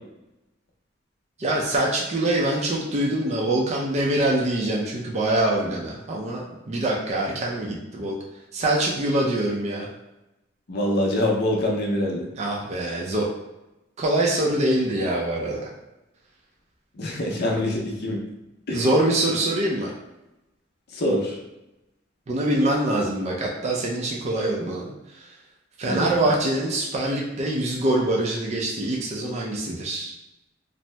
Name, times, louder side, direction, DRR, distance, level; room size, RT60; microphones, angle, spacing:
voice 1, 1.4-8.2 8.5-9.9 12.4-13.3 14.0-15.6 18.7-19.9 22.3-25.3 25.8-30.1, right 1 dB, 35° right, -2 dB, 0.4 m, -24 dB
voice 2, 10.7-12.3 17.0-18.2 18.7-18.8 20.9-21.4 25.9-26.1, left 1 dB, 55° left, -1 dB, 0.5 m, -24 dB
2.7 x 2.0 x 3.2 m, 0.95 s
head